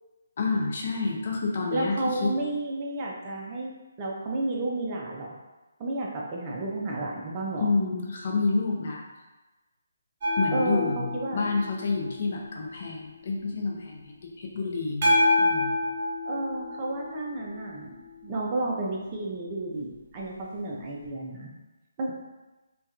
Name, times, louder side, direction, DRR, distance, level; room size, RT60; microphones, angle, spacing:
voice 1, 0.4-2.3 7.6-9.0 10.4-15.8, left 3 dB, 50° left, -1 dB, 0.5 m, -29 dB
voice 2, 1.7-3.7 4.0-5.3 5.8-7.7 10.5-10.8 11.1-11.4 16.2-17.9 18.2-21.5 22.0-22.1, right 2 dB, 30° right, -2 dB, 0.4 m, -31 dB
sound 1, 10.2-13.1 15.0-18.2 21.1-21.2, left 1 dB, 45° right, 0.9 m, -28 dB
2.7 x 2.2 x 2.3 m, 1.1 s
figure-of-eight pair, 150°, 0 cm